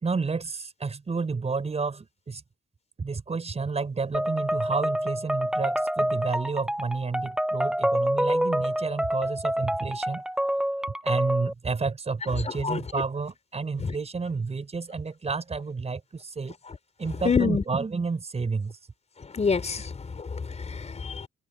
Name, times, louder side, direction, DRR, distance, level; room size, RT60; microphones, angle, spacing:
voice 1, 0.0-2.4 3.0-10.2 11.0-16.6 17.0-18.8, right 4 dB, 30° right, 5.8 m, -30 dB
sound 1, 4.1-11.5, equal, 5° right, 6.2 m, -27 dB
voice 2, 17.2-17.6 19.3-21.3, left 5 dB, 35° left, 4.8 m, -27 dB
cardioid pair, 90°, 20 cm